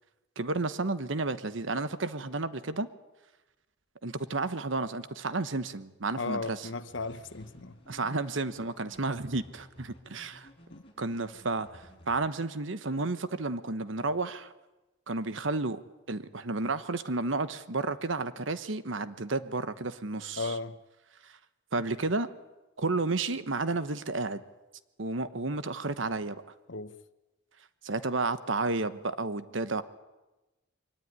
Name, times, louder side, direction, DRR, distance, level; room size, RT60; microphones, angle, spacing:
voice 1, 0.4-2.9 4.0-6.7 7.9-10.5 11.0-14.5 15.1-15.8 16.1-20.5 21.2-21.4 21.7-22.3 22.8-24.4 25.0-26.4 27.8-29.8, right 3 dB, 75° right, 1.2 m, -32 dB
voice 2, 6.2-7.8 10.7-10.8 20.4-20.8 26.7-26.9, left 3 dB, 70° left, 1.1 m, -35 dB
sound 1, 6.9-12.2, equal, 30° left, 5.9 m, -55 dB
23.0 x 19.0 x 9.6 m
head